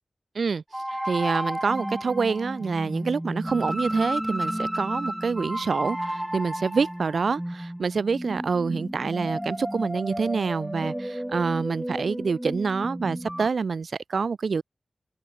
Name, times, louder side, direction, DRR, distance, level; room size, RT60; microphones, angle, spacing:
sound 1, 0.7-13.5, right 1 dB, 10° right, 3.0 m, -32 dB
voice 1, 1.1-14.6, right 5 dB, 80° right, 0.6 m, -27 dB
open air
wide cardioid pair, 85°, 0 cm